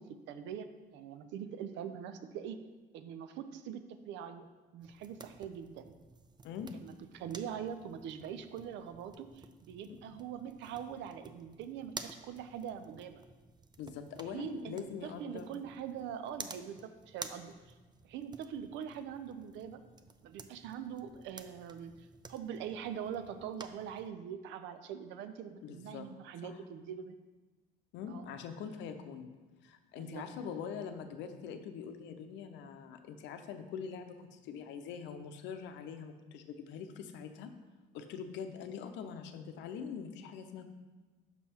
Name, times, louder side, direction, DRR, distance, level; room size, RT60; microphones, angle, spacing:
voice 1, 0.0-2.6 2.9-4.5 4.7-5.9 6.8-13.2 14.3-17.7 18.0-19.8 20.2-27.2 28.1-28.3 29.9-30.3, right 8 dB, 80° right, 10 dB, 0.5 m, -43 dB
sound 1, 4.8-24.1, right 4 dB, 25° right, 0.5 m, -52 dB
voice 2, 13.8-15.5 25.6-26.1 26.4-26.6 27.9-29.3 29.6-37.5 37.9-40.7, left 7 dB, 80° left, 7 dB, 0.7 m, -43 dB
6.0 x 5.4 x 4.3 m, 1.2 s
supercardioid pair, 70°, 19 cm